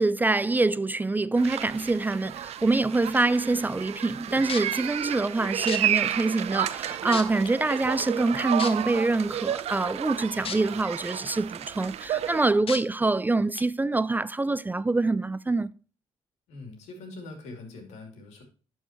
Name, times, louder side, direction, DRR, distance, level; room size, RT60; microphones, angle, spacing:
voice 1, 0.0-15.7, right 3 dB, 15° right, 0.4 m, -25 dB
sound 1, 1.4-12.5, right 11 dB, 70° right, 0.6 m, -32 dB
sound 2, 4.5-4.8 5.7-5.8 6.5-6.6 7.1-7.5 8.6-8.7 10.4-10.6 11.1-11.2 12.7-12.8 13.5-13.6, left 6 dB, 55° left, 1.3 m, -32 dB
voice 2, 16.5-18.4, left 2 dB, 85° left, 2.6 m, -43 dB
11.0 x 4.7 x 4.3 m
cardioid pair, 75°, 11 cm